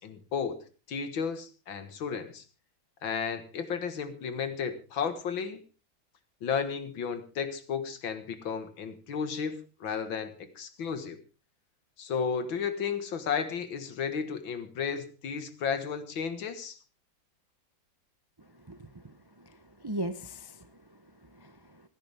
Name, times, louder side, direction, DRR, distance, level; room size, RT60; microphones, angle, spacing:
voice 1, 0.0-2.4 3.0-5.6 6.4-11.2 12.0-16.8, left 6 dB, 85° left, 10 dB, 2.4 m, -33 dB
voice 2, 18.7-19.1 19.5-20.7 21.3-21.8, right 1 dB, 35° right, 10 dB, 0.3 m, -39 dB
28.0 x 10.0 x 3.5 m, 0.33 s
omnidirectional pair, 2.1 m